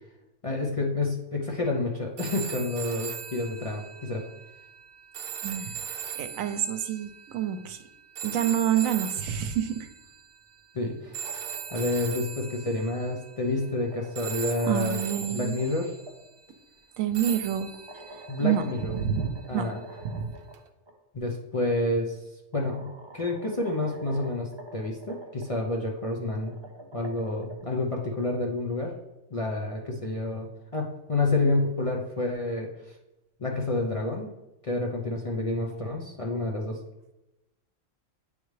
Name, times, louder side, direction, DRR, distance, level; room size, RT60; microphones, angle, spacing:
voice 1, 0.4-4.2 10.7-11.2 11.7-15.0 15.3-15.9 18.3-19.0 19.5-19.8 21.1-22.2 22.5-26.5 26.9-28.9 29.3-32.7 33.4-34.3 34.6-36.8, left 2 dB, 40° left, -1 dB, 0.5 m, -29 dB
sound 1, 2.2-10.4 11.1-13.8 14.2-16.3 17.1-19.4 20.5-20.7, right 7 dB, 60° right, 0.6 m, -39 dB
voice 2, 5.4-5.8 6.2-7.8 8.2-9.9 14.7-15.5 17.0-17.7 18.4-18.7 18.9-19.7 20.0-20.3, right 9 dB, 90° right, 10 dB, 1.0 m, -28 dB
sound 2, 11.0-12.1 13.3-16.1 17.7-20.5 20.9-21.0 22.0-22.1 22.5-25.5 26.3-28.0, right 1 dB, 25° right, 0.7 m, -46 dB
9.1 x 3.5 x 3.2 m, 0.97 s
omnidirectional pair, 1.4 m